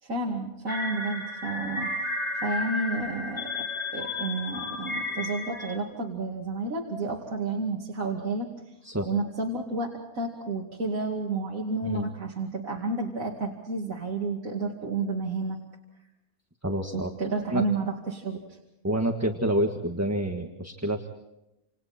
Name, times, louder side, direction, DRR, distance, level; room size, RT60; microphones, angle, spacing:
voice 1, 0.0-1.9 2.4-3.7 3.9-8.5 9.0-15.6 16.9-18.6, right 3 dB, 70° right, -2 dB, 2.9 m, -31 dB
sound 1, 0.7-5.8, left 2 dB, 25° left, 3.4 m, -33 dB
voice 2, 16.6-17.1 17.5-17.6 18.8-21.1, right 1 dB, 10° right, 3 dB, 1.5 m, -28 dB
29.0 x 28.0 x 4.4 m, 0.90 s
omnidirectional pair, 1.5 m